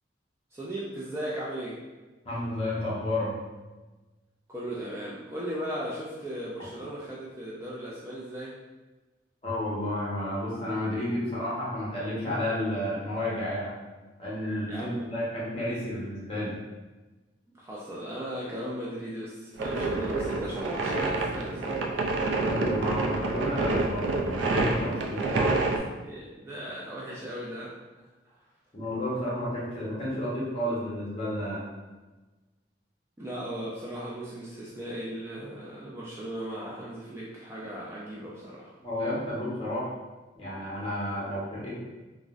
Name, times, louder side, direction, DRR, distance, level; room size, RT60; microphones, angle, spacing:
voice 1, 0.5-1.8 4.5-8.6 14.7-15.1 17.5-21.8 26.0-27.7 33.2-38.7, right 1 dB, 15° right, -6 dB, 0.3 m, -37 dB
voice 2, 2.2-3.4 9.4-13.7 14.2-16.6 22.4-25.6 28.7-31.6 38.8-39.9 40.4-41.8, left 1 dB, 30° left, -7 dB, 0.9 m, -31 dB
sound 1, 19.5-25.8, right 2 dB, 85° right, 0.4 m, -28 dB
3.5 x 2.0 x 2.4 m, 1.2 s
head